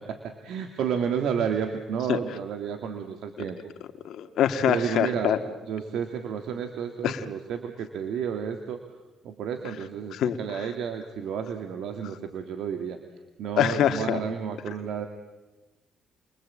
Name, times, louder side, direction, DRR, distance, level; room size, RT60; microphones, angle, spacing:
voice 1, 0.1-3.7 4.7-5.3 5.7-8.8 9.2-13.0 13.4-15.1, right 7 dB, 80° right, 6 dB, 2.2 m, -31 dB
voice 2, 4.0-5.4 7.0-7.2 10.1-10.7 13.6-14.2, left 10 dB, 75° left, 7 dB, 2.0 m, -24 dB
30.0 x 23.0 x 8.6 m, 1.1 s
cardioid pair, 90°, 0 cm